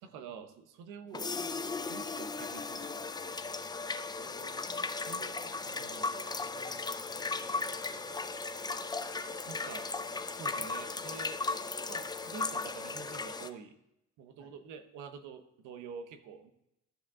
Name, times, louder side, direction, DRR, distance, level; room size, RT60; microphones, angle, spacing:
voice 1, 0.0-1.3 1.9-3.4 5.0-5.4 5.6-6.1 9.5-9.9 10.3-11.4 11.9-13.8 14.2-16.5, right 6 dB, 90° right, 9 dB, 0.9 m, -47 dB
sound 1, 1.1-13.5, left 3 dB, 15° left, 0.5 m, -36 dB
voice 2, 4.1-8.4 14.4-14.5, equal, 60° right, -2 dB, 3.3 m, -58 dB
13.5 x 5.0 x 3.6 m, 0.82 s
cardioid pair, 90°, 29 cm